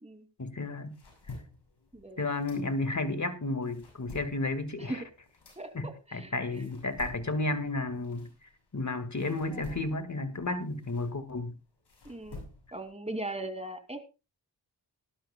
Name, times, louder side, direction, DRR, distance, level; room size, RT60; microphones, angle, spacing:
voice 1, 0.4-1.0 2.2-5.0 5.7-11.6, left 2 dB, 40° left, 2.0 m, -32 dB
sound 1, 0.6-3.1 3.5-8.8 9.2-12.9, left 2 dB, 65° left, 7.2 m, -49 dB
voice 2, 5.6-6.3 12.0-12.4 12.7-14.0, right 1 dB, 15° right, 2.7 m, -39 dB
18.5 x 11.5 x 2.3 m
cardioid pair, 50°, 44 cm